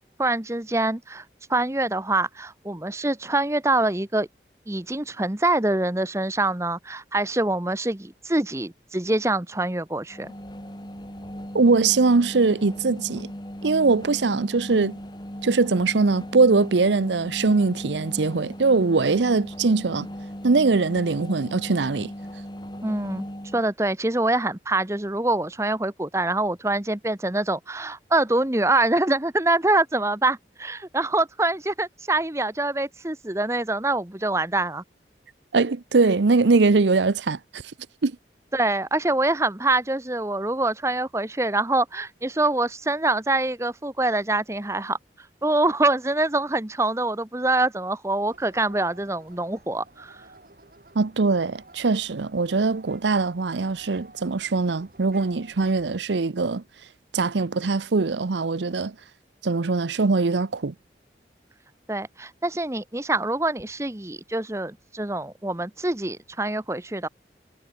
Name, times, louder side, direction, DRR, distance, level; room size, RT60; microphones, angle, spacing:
voice 1, 0.2-1.2 1.5-4.3 4.7-10.3 22.8-23.3 23.5-34.8 38.5-45.0 45.4-50.2 61.9-67.1, right 2 dB, 15° right, 1.0 m, -25 dB
sound 1, 10.1-23.7, equal, 25° left, 6.7 m, -37 dB
voice 2, 11.5-13.3 13.6-15.0 15.4-20.1 20.4-22.1 35.5-37.6 38.0-38.2 50.9-56.6 57.1-58.9 59.4-60.7, right 3 dB, 90° right, 0.7 m, -22 dB
sound 2, 48.3-55.9, right 2 dB, 55° right, 5.9 m, -51 dB
head